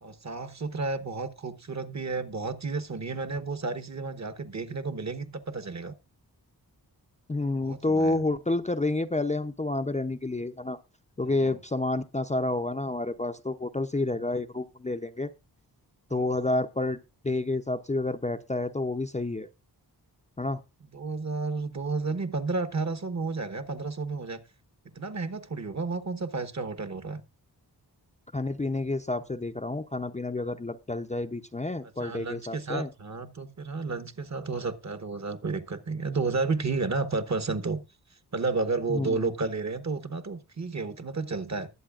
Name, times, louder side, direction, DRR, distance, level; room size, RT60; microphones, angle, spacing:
voice 1, 0.0-5.9 7.6-8.2 11.2-11.6 16.1-16.4 20.9-24.4 24.9-27.2 32.0-37.8 38.3-41.7, right 3 dB, 40° right, 1.1 m, -32 dB
voice 2, 7.3-10.8 11.2-15.3 16.1-17.0 17.2-19.5 20.4-20.6 28.3-32.9 38.9-39.2, left 2 dB, 15° left, 0.5 m, -29 dB
20.5 x 7.8 x 2.4 m
wide cardioid pair, 100°, 41 cm